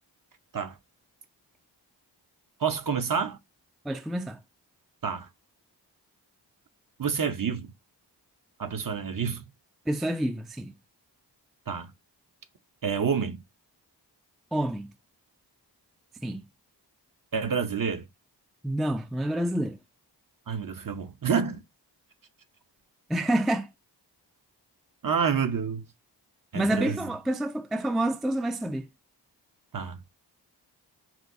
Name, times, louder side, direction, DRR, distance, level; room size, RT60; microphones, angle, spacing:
voice 1, 2.6-3.4 5.0-5.3 7.0-7.7 8.6-9.4 11.7-11.9 12.8-13.4 17.3-18.0 20.5-21.6 25.0-25.9 26.5-27.1 29.7-30.0, right 6 dB, 50° right, 0.7 m, -28 dB
voice 2, 3.8-4.4 9.9-10.7 14.5-14.9 16.2-16.4 18.6-19.8 23.1-23.7 26.5-28.9, right 1 dB, ahead, 0.3 m, -28 dB
6.0 x 2.3 x 2.6 m
cardioid pair, 45°, 43 cm